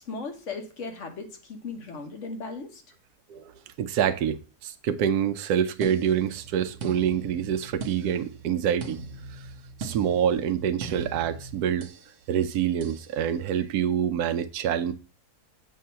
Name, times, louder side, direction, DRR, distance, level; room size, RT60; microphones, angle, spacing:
voice 1, 0.0-2.8, left 4 dB, 55° left, 1.3 m, -37 dB
voice 2, 3.8-9.0 9.3-9.4 9.8-11.9 12.3-14.9, right 9 dB, 85° right, 1.1 m, -26 dB
sound 1, 5.8-12.1 12.8-13.1, right 3 dB, 60° right, 1.0 m, -40 dB
7.6 x 2.8 x 5.5 m
omnidirectional pair, 1.6 m